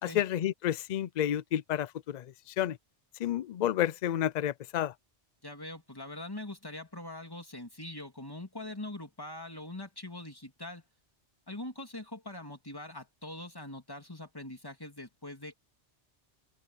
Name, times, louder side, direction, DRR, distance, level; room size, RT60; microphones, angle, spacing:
voice 1, 0.0-2.8 3.2-4.9, left 11 dB, 60° left, 0.4 m, -30 dB
voice 2, 5.4-10.8 11.5-15.5, left 1 dB, 20° left, 2.8 m, -43 dB
open air
omnidirectional pair, 1.2 m